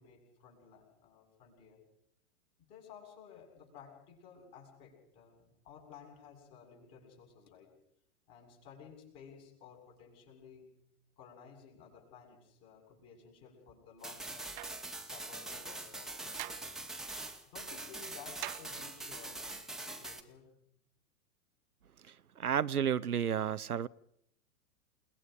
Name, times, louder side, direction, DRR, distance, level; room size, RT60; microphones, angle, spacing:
voice 1, 0.0-1.8 2.6-7.7 8.3-10.7 11.2-14.5 15.0-16.7 17.5-20.5, left 6 dB, 35° left, 7.5 m, -55 dB
sound 1, 14.0-20.2, right 2 dB, ahead, 1.5 m, -43 dB
sound 2, 14.5-14.9 16.4-16.7 18.4-19.0, right 18 dB, 35° right, 0.8 m, -43 dB
voice 2, 22.4-23.9, right 8 dB, 75° right, 0.7 m, -31 dB
29.0 x 19.5 x 5.2 m
figure-of-eight pair, 100°, 44 cm